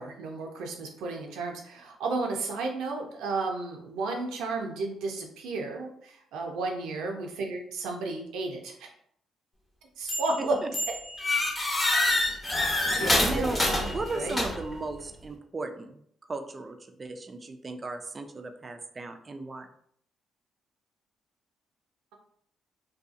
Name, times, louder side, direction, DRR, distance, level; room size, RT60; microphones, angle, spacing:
voice 1, 0.0-8.9 10.0-10.6 12.9-14.4, right 3 dB, 90° right, 2 dB, 0.5 m, -33 dB
voice 2, 6.9-7.2 10.4-10.5 13.2-16.0 16.3-19.7, right 3 dB, 30° right, 7 dB, 0.3 m, -37 dB
sound 1, 10.1-10.4 10.7-14.8, left 2 dB, 20° left, 0.8 m, -27 dB
2.6 x 2.3 x 2.5 m, 0.66 s
cardioid pair, 90°, 0 cm